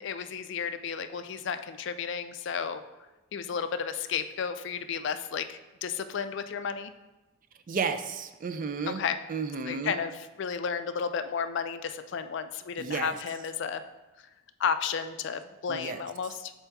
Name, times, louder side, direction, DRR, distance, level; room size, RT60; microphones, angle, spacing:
voice 1, 0.0-2.8 3.3-6.9 8.9-9.2 9.7-13.8 14.6-16.5, left 6 dB, 55° left, 10 dB, 0.3 m, -33 dB
voice 2, 7.7-9.0 9.3-10.0 12.8-13.2 15.7-16.0, right 5 dB, 40° right, 9 dB, 0.4 m, -32 dB
7.0 x 4.4 x 3.5 m, 1.1 s
head